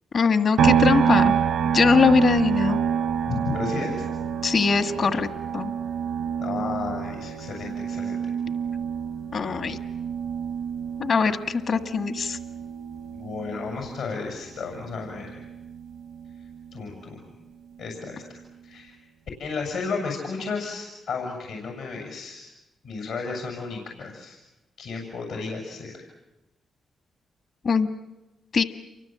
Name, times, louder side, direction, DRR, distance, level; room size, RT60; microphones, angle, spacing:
voice 1, 0.1-1.3 1.7-2.8 4.4-5.3 5.5-5.7 9.3-9.8 11.0-12.4 27.6-27.9 28.5-28.6, left 5 dB, 60° left, 8 dB, 1.7 m, -21 dB
sound 1, 0.6-14.1 14.5-16.7, right 7 dB, 80° right, 0.9 m, -27 dB
voice 2, 3.3-4.1 6.4-8.3 13.1-15.5 16.7-17.2 17.8-19.0 19.4-22.5 22.8-24.4 24.8-26.0, left 4 dB, 85° left, 1 dB, 7.2 m, -33 dB
29.5 x 24.0 x 7.7 m, 1.0 s
supercardioid pair, 60°, 0 cm